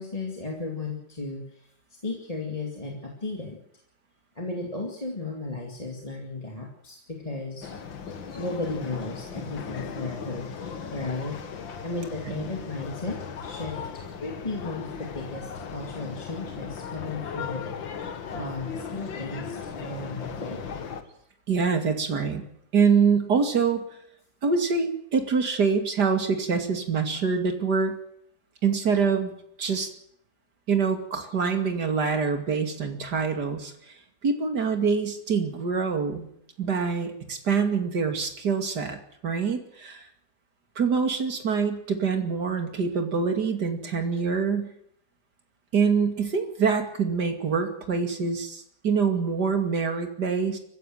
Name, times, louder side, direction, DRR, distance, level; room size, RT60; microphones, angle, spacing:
voice 1, 0.0-1.7 2.0-3.6 4.4-7.7 8.3-11.4 11.8-17.7 18.3-20.7, left 3 dB, 20° left, 0 dB, 2.4 m, -35 dB
sound 1, 7.6-21.0, left 6 dB, 80° left, 2.4 m, -37 dB
voice 2, 21.5-22.4 22.7-23.8 24.4-27.9 28.6-29.3 29.6-29.9 30.7-33.7 34.2-36.3 36.6-40.1 40.8-44.7 45.7-50.6, right 5 dB, 60° right, 6 dB, 3.0 m, -25 dB
23.5 x 15.5 x 7.8 m, 0.71 s
omnidirectional pair, 2.1 m